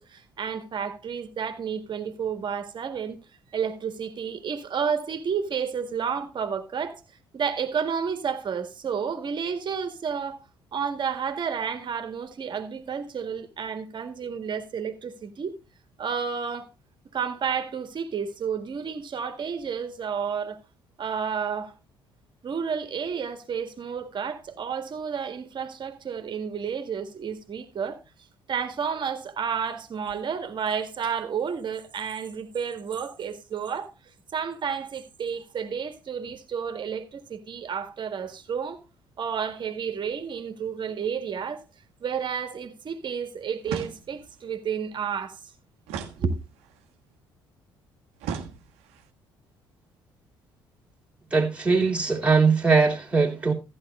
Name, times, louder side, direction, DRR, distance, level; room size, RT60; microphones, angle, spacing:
voice 1, 0.0-3.2 3.5-7.0 7.3-10.4 10.7-15.6 16.0-16.7 17.1-20.6 21.0-21.7 22.4-28.0 28.5-33.9 34.3-38.8 39.2-41.6 42.0-45.4 46.2-46.4, right 6 dB, 40° right, 1.8 m, -31 dB
sound 1, 43.6-44.4 45.9-46.8 48.2-49.1, right 7 dB, 65° right, 1.2 m, -36 dB
voice 2, 51.3-53.5, right 4 dB, 10° right, 2.6 m, -21 dB
14.5 x 10.0 x 2.4 m
figure-of-eight pair, 50°, 12 cm